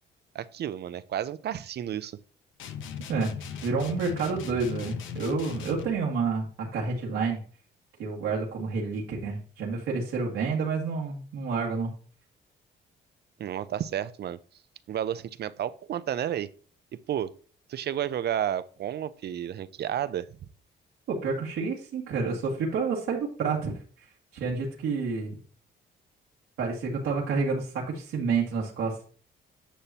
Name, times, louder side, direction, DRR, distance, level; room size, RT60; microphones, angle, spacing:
voice 1, 0.3-2.2 13.4-14.4 14.9-16.5 16.9-17.3 17.7-20.3, right 10 dB, 55° right, 0.5 m, -31 dB
sound 1, 2.6-6.0, left 7 dB, 80° left, 0.9 m, -38 dB
voice 2, 3.6-7.4 8.0-11.9 21.1-23.7 24.3-25.4 26.6-28.9, right 4 dB, 90° right, 1.9 m, -29 dB
10.0 x 5.7 x 2.9 m
cardioid pair, 90°, 20 cm